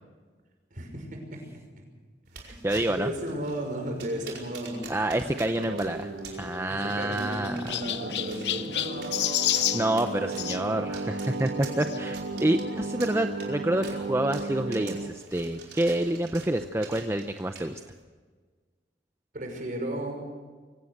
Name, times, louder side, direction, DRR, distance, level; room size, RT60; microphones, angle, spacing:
voice 1, 0.7-1.5 1.8-1.9 2.3-4.9 6.7-9.3 19.3-20.3, right 1 dB, 50° right, 3 dB, 5.8 m, -35 dB
sound 1, 2.2-18.0, right 5 dB, 70° right, 5.0 m, -48 dB
voice 2, 2.5-3.1 4.9-6.1 6.4-7.8 9.7-17.8, right 1 dB, 15° right, 7 dB, 0.7 m, -28 dB
Singing, 5.3-15.1, right 2 dB, 90° right, 2.0 m, -35 dB
Chirp tweet, 6.3-10.6 11.8-12.0 12.7-12.8 13.0-13.1 14.4-14.5, left 12 dB, 70° left, 0.9 m, -30 dB
24.0 x 17.0 x 6.7 m, 1.4 s
head